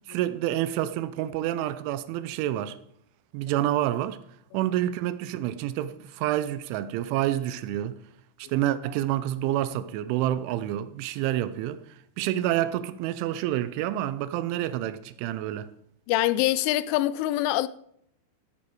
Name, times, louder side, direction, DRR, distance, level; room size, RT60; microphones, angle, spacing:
voice 1, 0.1-2.8 3.3-4.2 4.5-8.0 8.5-11.8 12.2-15.7, right 13 dB, 85° right, 3.1 m, -28 dB
voice 2, 16.1-17.7, left 15 dB, 85° left, 3.0 m, -24 dB
13.5 x 8.2 x 4.9 m
omnidirectional pair, 5.4 m